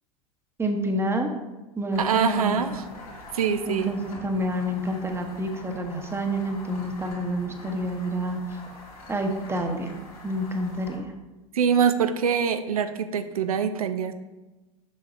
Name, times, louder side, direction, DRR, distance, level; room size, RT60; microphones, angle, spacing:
voice 1, 0.6-1.3 1.8-2.6 3.7-8.4 9.1-10.0 10.2-11.1, right 1 dB, 15° right, 4 dB, 0.9 m, -28 dB
sound 1, 1.9-11.0, left 1 dB, 85° left, 2.1 m, -44 dB
voice 2, 2.0-2.8 3.3-4.0 11.5-14.1, right 7 dB, 80° right, 10 dB, 0.5 m, -24 dB
7.2 x 5.8 x 2.6 m, 1.1 s
hypercardioid pair, 85°, 18 cm